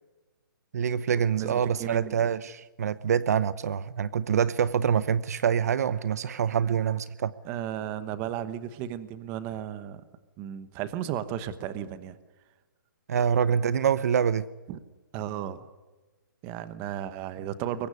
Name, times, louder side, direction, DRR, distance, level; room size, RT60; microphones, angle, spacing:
voice 1, 0.7-7.3 13.1-14.5, right 8 dB, 50° right, 0.9 m, -25 dB
voice 2, 1.3-2.2 7.4-10.0 10.4-12.2 14.7-14.8 15.1-15.7 16.4-17.9, right 10 dB, 20° right, 1.1 m, -34 dB
23.0 x 18.5 x 9.9 m
hypercardioid pair, 175°, 11 cm